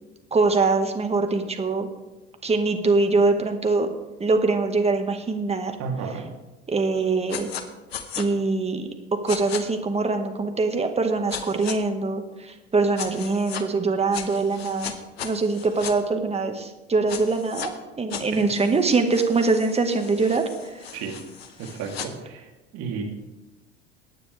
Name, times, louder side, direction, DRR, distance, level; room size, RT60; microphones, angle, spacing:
voice 1, 0.3-1.9 2.4-3.9 4.2-5.8 6.7-7.5 8.2-8.9 9.2-14.9 15.2-20.9, right 3 dB, 20° right, 6 dB, 1.8 m, -23 dB
voice 2, 5.8-6.3 18.3-18.4 20.9-21.1 21.6-22.5 22.7-23.0, right 5 dB, 55° right, 0 dB, 3.4 m, -32 dB
sound 1, 7.3-7.6 7.9-8.2 9.3-9.6 11.3-11.8 13.0-13.6 14.1-15.9 17.1-17.7 18.1-22.1, left 8 dB, 80° left, 1.2 m, -36 dB
22.5 x 9.4 x 3.5 m, 1.1 s
hypercardioid pair, 75°, 31 cm